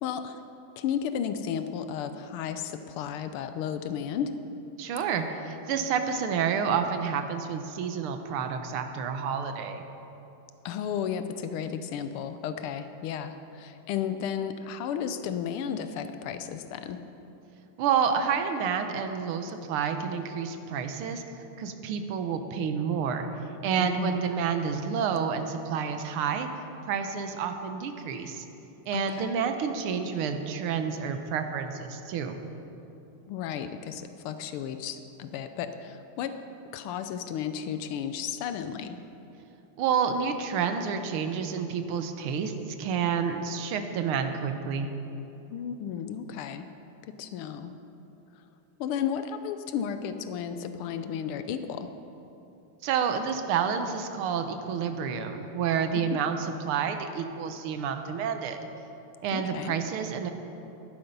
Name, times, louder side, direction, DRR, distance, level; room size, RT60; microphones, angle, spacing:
voice 1, 0.0-0.4 0.8-4.3 10.6-17.0 23.8-24.2 28.9-29.3 33.3-36.3 36.7-39.0 45.5-46.7 47.0-47.7 48.8-51.9 55.9-56.0 59.3-59.7, left 8 dB, 85° left, 9 dB, 1.6 m, -33 dB
voice 2, 4.8-9.8 17.8-23.3 23.6-26.5 26.9-28.5 28.9-32.4 39.8-44.9 52.8-56.4 56.7-58.6 59.2-60.3, right 7 dB, 85° right, 7 dB, 1.7 m, -29 dB
13.5 x 11.5 x 5.4 m, 2.9 s
omnidirectional pair, 2.4 m